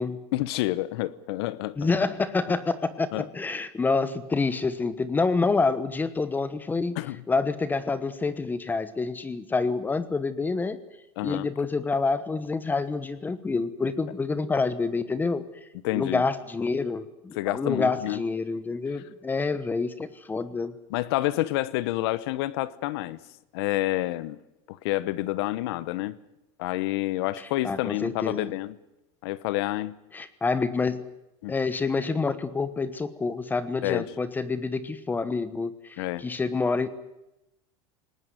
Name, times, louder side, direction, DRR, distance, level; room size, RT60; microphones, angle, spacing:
voice 1, 0.3-1.9 3.1-3.3 7.0-7.2 11.2-11.5 15.8-16.2 17.3-18.2 20.9-23.2 23.5-24.4 24.7-26.2 26.6-28.8 29.2-30.0 31.4-31.5 33.8-34.0 36.0-36.2, left 17 dB, 75° left, 1.0 m, -28 dB
voice 2, 1.8-7.0 7.3-10.8 11.2-15.4 15.9-20.7 27.4-28.5 30.1-31.1 31.5-36.9, left 4 dB, 15° left, 1.1 m, -27 dB
20.0 x 19.0 x 9.5 m
supercardioid pair, 140°, 13 cm